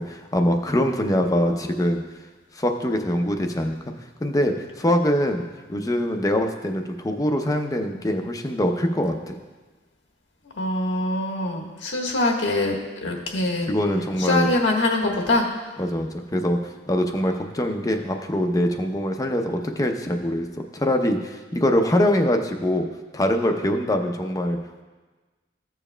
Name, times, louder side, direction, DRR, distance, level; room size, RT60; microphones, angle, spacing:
voice 1, 0.0-2.0 2.6-3.8 4.2-5.4 5.7-9.3 13.7-14.5 15.8-16.6 16.9-20.5 20.7-22.9 23.1-24.6, left 1 dB, 20° left, 4 dB, 0.6 m, -23 dB
voice 2, 10.6-13.7 14.2-15.5, left 2 dB, 85° left, 0 dB, 1.3 m, -24 dB
15.0 x 7.1 x 2.2 m, 1.3 s
head